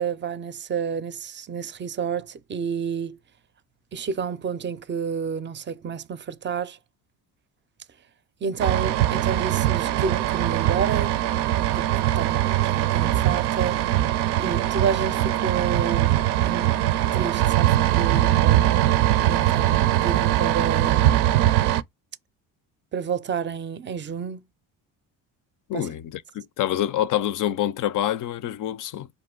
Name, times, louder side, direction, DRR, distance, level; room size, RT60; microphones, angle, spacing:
voice 1, 0.0-3.2 3.9-6.8 8.4-11.2 11.7-11.9 12.1-13.8 14.4-16.2 16.4-16.8 17.1-18.8 19.2-21.3 22.9-24.4 25.7-25.9, right 6 dB, 30° right, 0.5 m, -30 dB
sound 1, 8.6-21.8, right 13 dB, 80° right, 0.5 m, -21 dB
voice 2, 25.7-29.1, left 12 dB, 50° left, 0.5 m, -26 dB
5.0 x 2.7 x 3.7 m
supercardioid pair, 80°, 41 cm